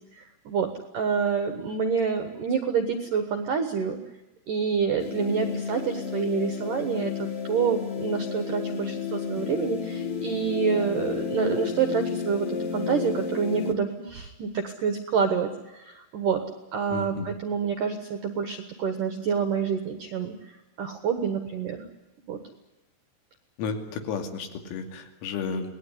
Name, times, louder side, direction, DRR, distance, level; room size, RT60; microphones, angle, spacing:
voice 1, 0.1-4.0 4.5-16.4 16.7-21.8 22.3-22.4, right 6 dB, 75° right, 7 dB, 2.0 m, -27 dB
sound 1, 5.0-13.7, left 6 dB, 55° left, 1.7 m, -32 dB
voice 2, 16.9-17.3 23.6-25.8, left 5 dB, 85° left, 5 dB, 5.3 m, -32 dB
27.0 x 19.5 x 10.0 m, 1.0 s
omnidirectional pair, 6.0 m